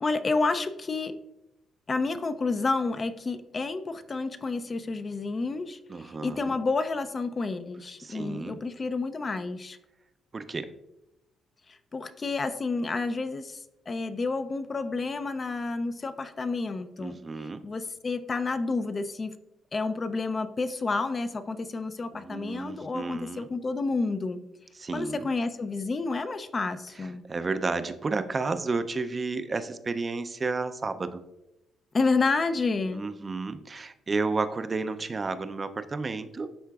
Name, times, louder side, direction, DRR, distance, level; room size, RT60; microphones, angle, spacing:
voice 1, 0.0-1.2 1.9-9.8 11.9-17.2 17.6-19.3 19.7-24.4 24.9-27.2 31.9-33.0, left 3 dB, 35° left, 10 dB, 0.4 m, -30 dB
voice 2, 5.9-6.5 8.0-8.6 10.3-10.7 17.0-17.6 22.1-23.5 24.8-25.3 27.3-31.2 32.9-36.5, right 3 dB, 30° right, 10 dB, 0.4 m, -32 dB
11.0 x 3.7 x 2.3 m, 0.91 s
cardioid pair, 90°, 0 cm